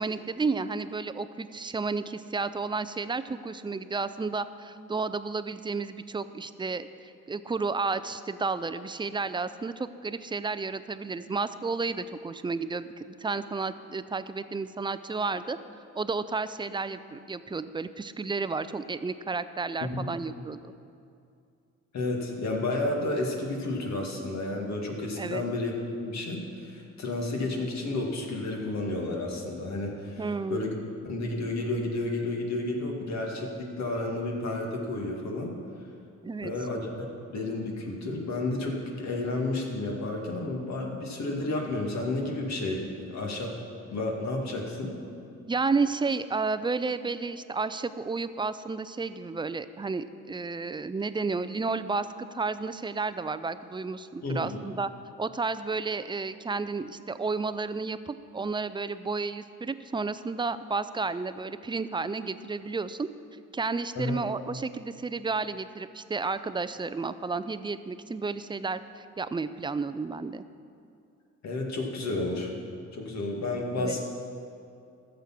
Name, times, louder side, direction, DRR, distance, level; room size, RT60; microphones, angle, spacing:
voice 1, 0.0-15.6 15.9-20.7 25.2-25.4 30.2-30.6 36.2-36.5 45.5-54.9 55.2-63.1 63.5-70.4 73.8-74.0, right 4 dB, 15° right, 13 dB, 0.4 m, -32 dB
voice 2, 19.8-20.1 21.9-30.7 31.1-35.5 36.4-36.9 37.3-43.6 43.9-45.0 54.2-54.6 64.0-64.2 71.4-72.5 72.9-74.0, left 2 dB, 65° left, 0 dB, 2.0 m, -31 dB
14.0 x 6.9 x 5.9 m, 2.5 s
cardioid pair, 90°, 30 cm